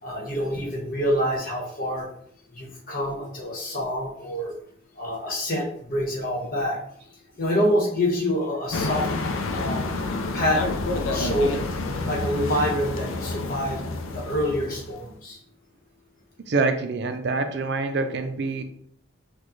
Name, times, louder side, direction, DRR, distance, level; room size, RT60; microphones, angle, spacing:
voice 1, 0.0-2.1 2.5-4.5 4.9-6.8 7.4-9.1 9.5-9.8 10.3-10.6 10.9-11.6 12.1-13.8 14.1-15.4, equal, 45° left, -2 dB, 1.2 m, -26 dB
sound 1, 8.7-15.1, left 3 dB, 80° left, 0.5 m, -29 dB
voice 2, 16.5-18.6, right 3 dB, 55° right, 7 dB, 0.4 m, -25 dB
6.1 x 2.3 x 3.1 m, 0.66 s
head